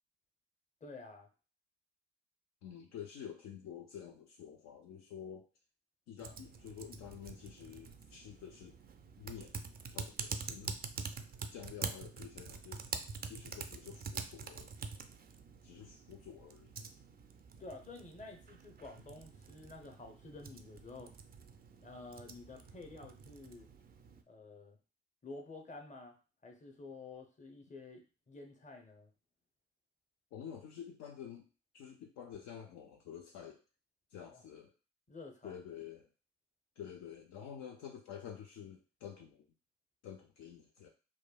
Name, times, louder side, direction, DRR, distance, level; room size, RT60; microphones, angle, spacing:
voice 1, 0.8-1.3 17.6-21.1 21.8-23.7 24.3-24.8 25.2-26.2 26.4-29.1 34.3-34.4 35.1-35.5, left 3 dB, 25° left, 3 dB, 0.8 m, -50 dB
voice 2, 2.6-5.5 6.1-8.7 9.2-9.6 9.9-10.8 11.5-14.7 15.6-16.7 30.3-31.5 31.7-33.6 34.1-34.7 35.4-36.1 36.8-39.4 40.0-40.9, left 8 dB, 60° left, 2 dB, 0.5 m, -49 dB
Typing, 6.2-24.2, right 5 dB, 30° right, 0.4 m, -46 dB
3.0 x 2.2 x 2.3 m, 0.34 s
hypercardioid pair, 40°, 30 cm